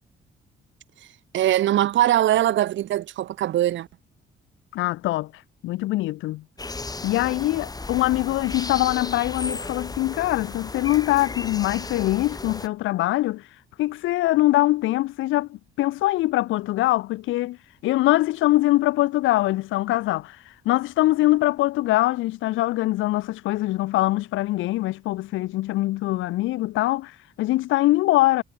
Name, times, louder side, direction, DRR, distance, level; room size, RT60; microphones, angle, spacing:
voice 1, 1.3-3.9, right 13 dB, 70° right, 0.9 m, -21 dB
voice 2, 4.7-5.3 5.6-6.4 7.0-13.4 13.8-17.6 17.8-20.4 20.7-28.4, left 17 dB, 80° left, 0.5 m, -23 dB
sound 1, 6.6-12.7, left 3 dB, 20° left, 2.2 m, -35 dB
cardioid pair, 90°, 20 cm